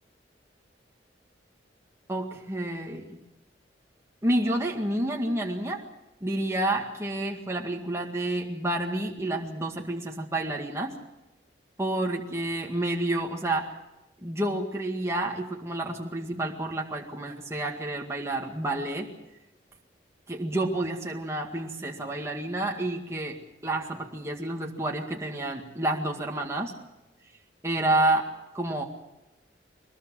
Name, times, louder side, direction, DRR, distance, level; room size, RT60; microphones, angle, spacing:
voice 1, 2.1-3.2 4.2-5.9 6.2-11.0 11.8-13.7 14.2-19.1 20.3-23.4 23.6-26.7 27.6-28.8, right 1 dB, 15° right, 0 dB, 2.0 m, -29 dB
23.5 x 20.0 x 7.6 m, 0.93 s
head